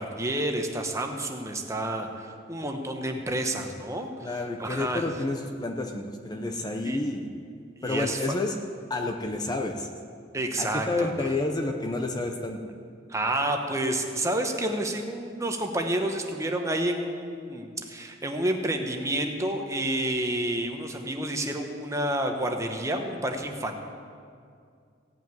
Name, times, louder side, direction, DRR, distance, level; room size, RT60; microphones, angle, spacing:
voice 1, 0.0-4.3 4.6-5.0 6.8-7.0 7.8-8.4 10.3-11.3 13.1-23.9, right 1 dB, 15° right, 3 dB, 1.0 m, -29 dB
voice 2, 4.2-7.3 7.8-8.6 8.9-9.9 10.6-12.6, left 2 dB, 20° left, 3 dB, 0.7 m, -30 dB
16.5 x 5.8 x 9.2 m, 2.3 s
head